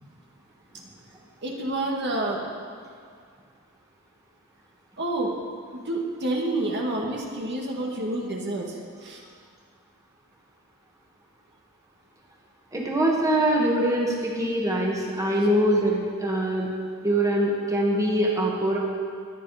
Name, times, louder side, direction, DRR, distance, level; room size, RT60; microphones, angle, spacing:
voice 1, 1.4-2.4 5.0-5.3 5.7-9.2, right 1 dB, 55° right, -1 dB, 2.0 m, -28 dB
voice 2, 12.7-16.7 17.0-18.8, right 1 dB, 15° right, -3 dB, 2.0 m, -23 dB
21.5 x 9.5 x 5.0 m, 2.1 s
head